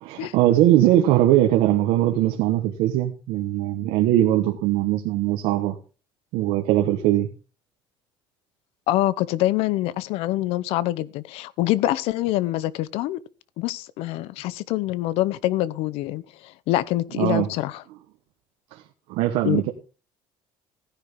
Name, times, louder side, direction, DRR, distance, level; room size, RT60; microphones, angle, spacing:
voice 1, 0.0-5.7 6.3-7.3 17.2-17.5 18.7-18.8 19.1-19.7, right 13 dB, 85° right, 1.4 m, -20 dB
voice 2, 8.9-13.2 13.6-17.8 19.4-19.6, left 15 dB, 75° left, 0.8 m, -25 dB
16.0 x 10.5 x 3.8 m
cardioid pair, 155°, 10 cm